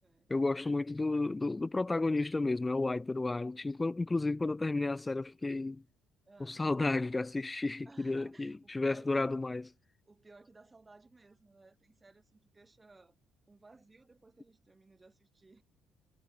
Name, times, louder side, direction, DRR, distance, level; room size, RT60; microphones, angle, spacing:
voice 1, 0.3-5.8 6.4-9.7, left 2 dB, 15° left, 0.3 m, -32 dB
voice 2, 6.3-6.6 7.9-9.3 10.1-13.2 13.5-15.6, right 3 dB, 15° right, 5.7 m, -59 dB
cardioid pair, 130°, 0 cm